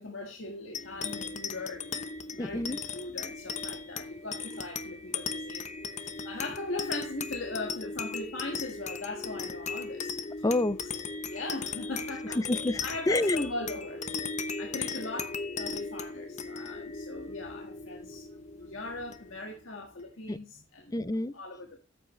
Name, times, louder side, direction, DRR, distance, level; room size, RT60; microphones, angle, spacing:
voice 1, 0.0-1.9 2.3-5.7 6.0-10.1 11.3-12.4 12.8-14.1 14.6-18.3 18.6-21.0 21.3-21.8, left 2 dB, 80° left, 1.7 m, -39 dB
sound 1, 0.7-19.6, left 4 dB, 35° left, 0.9 m, -37 dB
voice 2, 2.4-2.8 10.4-10.8 12.4-13.5 20.3-20.4 20.9-21.3, left 2 dB, 20° left, 0.4 m, -28 dB
14.0 x 8.2 x 3.2 m
head